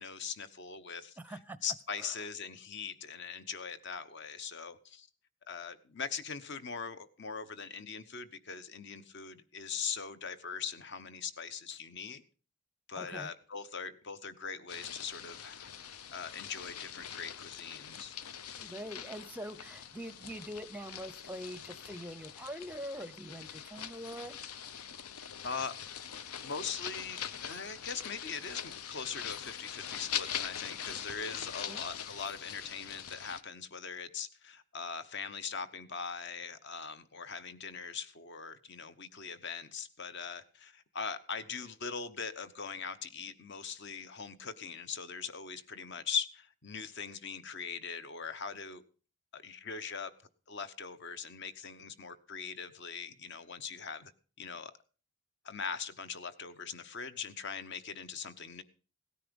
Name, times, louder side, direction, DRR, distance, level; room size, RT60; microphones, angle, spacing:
voice 1, 0.0-1.2 1.6-5.1 5.5-12.2 12.9-15.7 16.1-18.2 25.4-25.7 26.4-48.8 49.3-50.1 50.5-54.1 54.4-54.7 55.4-58.6, left 6 dB, 50° left, 0.9 m, -41 dB
voice 2, 1.2-1.6 2.0-2.1 13.0-13.3 18.6-24.4 31.7-31.8, equal, 5° right, 0.6 m, -44 dB
sound 1, 14.7-33.4, left 9 dB, 80° left, 0.8 m, -43 dB
17.5 x 9.9 x 5.3 m
head